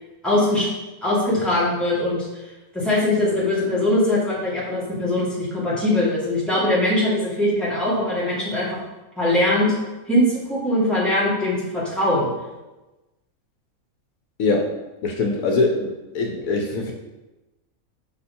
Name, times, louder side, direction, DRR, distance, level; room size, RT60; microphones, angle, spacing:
voice 1, 0.2-0.7 1.0-2.4 2.7-8.7 9.2-9.7 10.1-12.3, left 1 dB, ahead, -7 dB, 2.1 m, -21 dB
voice 2, 14.4-14.7 15.0-16.9, left 3 dB, 70° left, 2 dB, 1.1 m, -22 dB
5.9 x 5.6 x 4.3 m, 1.1 s
omnidirectional pair, 1.5 m